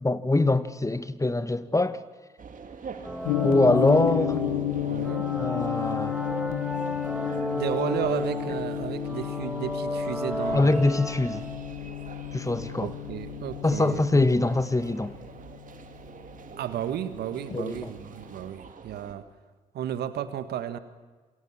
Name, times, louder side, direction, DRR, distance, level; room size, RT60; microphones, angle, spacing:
voice 1, 0.0-2.0 3.4-4.4 5.4-6.2 10.5-11.5 12.3-12.9 13.6-15.1 17.5-17.9, left 2 dB, 20° left, 1.8 m, -23 dB
sound 1, 2.4-19.1, right 5 dB, 50° right, 3.0 m, -45 dB
sound 2, 3.0-11.7, equal, 5° right, 5.8 m, -33 dB
Gong, 3.3-17.4, left 14 dB, 80° left, 1.1 m, -32 dB
voice 2, 4.8-5.3 7.5-10.9 12.8-14.3 16.6-19.3 19.7-20.8, right 10 dB, 70° right, 1.7 m, -33 dB
28.0 x 23.0 x 7.4 m
hypercardioid pair, 40°, 17 cm